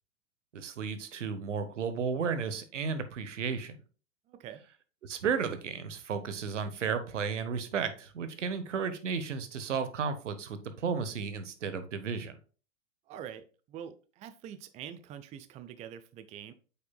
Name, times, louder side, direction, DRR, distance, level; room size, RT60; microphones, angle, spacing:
voice 1, 0.5-3.8 5.0-12.4, right 6 dB, 75° right, 10 dB, 1.1 m, -33 dB
voice 2, 4.3-4.6 13.1-16.5, right 9 dB, 20° right, 11 dB, 0.4 m, -45 dB
7.9 x 5.7 x 2.3 m, 0.38 s
hypercardioid pair, 100°, 36 cm